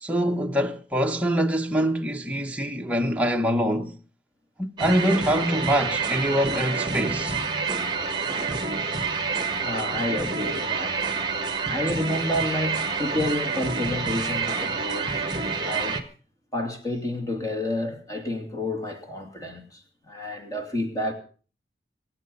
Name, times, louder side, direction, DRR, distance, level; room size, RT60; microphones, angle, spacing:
voice 1, 0.0-4.0 4.6-7.3, equal, 10° right, 0.9 m, -24 dB
sound 1, 4.8-16.0, right 4 dB, 25° right, 1.4 m, -28 dB
voice 2, 9.5-11.0 11.7-15.3 15.6-16.0 16.5-19.8 20.1-21.1, left 1 dB, 20° left, 2.7 m, -30 dB
24.0 x 8.7 x 5.3 m
head